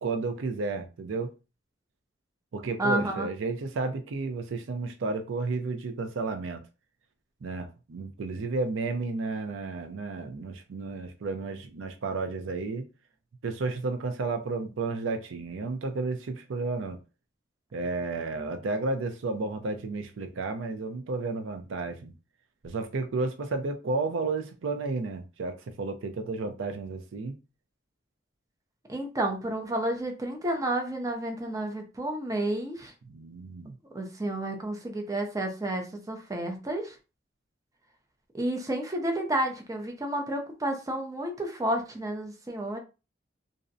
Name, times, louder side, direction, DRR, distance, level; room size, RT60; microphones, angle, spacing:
voice 1, 0.0-1.3 2.5-6.6 7.4-12.8 13.4-17.0 17.7-22.1 22.6-27.3 33.1-33.8, right 3 dB, 80° right, 0.5 m, -32 dB
voice 2, 2.8-3.3 28.9-32.9 33.9-37.0 38.3-42.8, right 1 dB, 15° right, 0.4 m, -31 dB
2.5 x 2.0 x 2.5 m
head